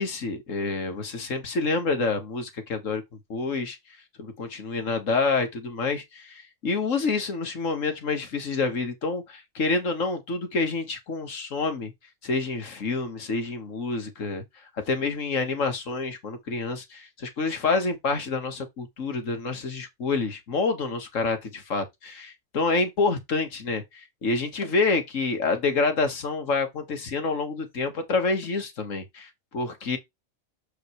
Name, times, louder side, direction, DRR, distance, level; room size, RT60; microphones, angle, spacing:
voice 1, 0.0-3.0 3.3-3.8 4.2-11.9 12.2-14.4 14.9-23.8 24.2-29.3 29.5-30.0, left 3 dB, 85° left, 1.9 m, -27 dB
7.6 x 5.1 x 3.2 m
omnidirectional pair, 1.3 m